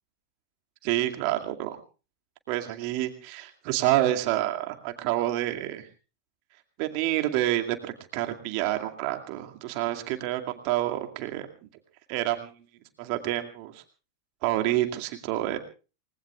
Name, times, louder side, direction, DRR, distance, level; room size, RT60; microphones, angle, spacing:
voice 1, 0.8-1.8 2.5-5.9 6.8-11.5 12.1-12.5 13.0-13.8 14.4-15.6, right 15 dB, 45° right, 5 dB, 2.3 m, -28 dB
28.5 x 19.5 x 2.4 m, 0.34 s
figure-of-eight pair, 90°, 0 cm